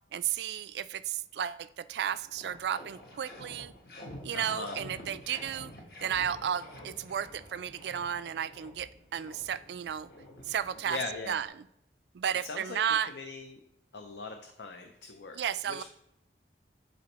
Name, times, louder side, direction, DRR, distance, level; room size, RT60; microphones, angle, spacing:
voice 1, 0.1-3.7 4.2-5.7 6.0-10.1 10.5-11.0 11.3-11.5 12.1-13.1 15.3-15.8, right 9 dB, 75° right, 15 dB, 0.3 m, -33 dB
sound 1, 1.7-1.8 2.1-11.5, left 1 dB, 55° left, 1.4 m, -49 dB
voice 2, 4.3-4.8 10.9-11.4 12.4-12.8 13.1-13.6 13.9-15.4 15.6-15.8, left 3 dB, 85° left, 4 dB, 0.6 m, -40 dB
10.5 x 4.1 x 3.0 m, 0.79 s
head